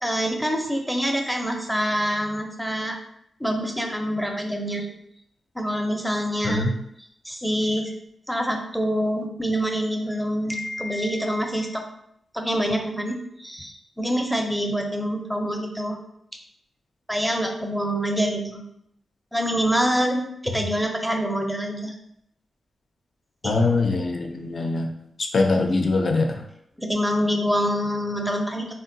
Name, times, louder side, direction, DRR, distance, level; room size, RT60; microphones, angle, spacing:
voice 1, 0.0-3.0 3.4-4.9 5.5-6.7 7.2-7.9 8.3-11.8 12.3-16.0 17.1-18.6 19.3-22.0 23.4-23.5 26.8-28.7, equal, ahead, 3 dB, 0.5 m, -26 dB
voice 2, 23.4-24.9 25.2-26.4, left 3 dB, 55° left, 4 dB, 0.5 m, -22 dB
3.7 x 2.1 x 2.6 m, 0.74 s
cardioid pair, 65°, 0 cm